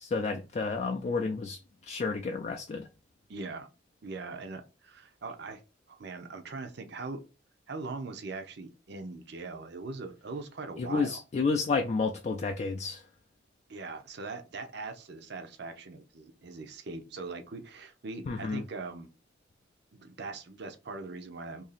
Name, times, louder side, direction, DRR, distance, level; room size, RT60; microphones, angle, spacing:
voice 1, 0.0-2.9 10.8-13.0 18.3-18.6, left 4 dB, 35° left, 0.3 m, -31 dB
voice 2, 3.3-3.7 4.0-5.6 5.9-7.2 7.7-11.2 13.7-19.1 19.9-21.6, right 3 dB, 60° right, 0.6 m, -41 dB
2.8 x 2.7 x 4.0 m
head